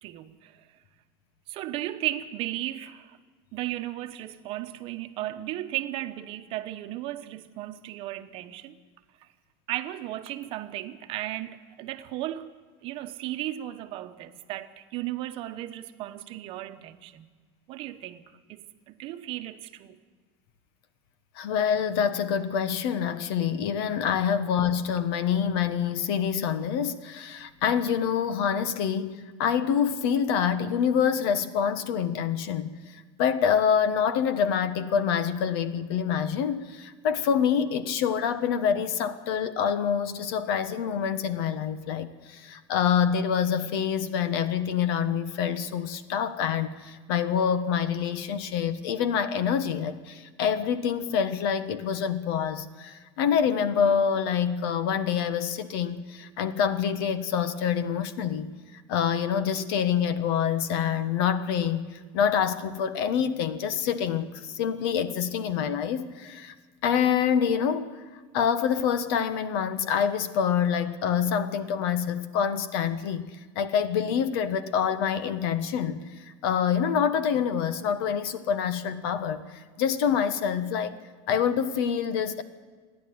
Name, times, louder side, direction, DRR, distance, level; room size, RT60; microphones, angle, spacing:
voice 1, 0.0-0.7 1.5-3.2 3.5-8.8 9.2-9.3 9.7-12.5 12.8-17.3 17.7-18.2 18.5-20.0 24.2-24.4, right 14 dB, 45° right, 1.0 m, -35 dB
voice 2, 21.4-58.5 58.9-61.9 62.1-66.5 66.8-68.0 68.3-73.3 73.5-81.0 81.3-82.4, left 7 dB, 70° left, 1.3 m, -26 dB
29.0 x 11.0 x 9.5 m
supercardioid pair, 155°, 13 cm